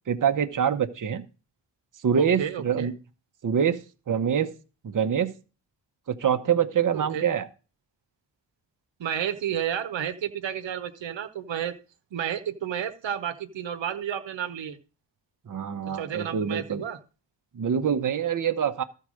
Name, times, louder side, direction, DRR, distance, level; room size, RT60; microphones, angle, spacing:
voice 1, 0.1-1.2 2.0-2.9 3.4-3.8 4.1-4.5 4.8-5.3 6.1-7.5 15.5-16.8 17.5-18.8, right 8 dB, 45° right, 8 dB, 0.9 m, -25 dB
voice 2, 2.1-2.9 6.9-7.2 9.0-11.7 12.1-14.8 15.9-17.0, right 9 dB, 85° right, 7 dB, 1.0 m, -31 dB
13.0 x 4.7 x 6.3 m, 0.34 s
cardioid pair, 70°, 43 cm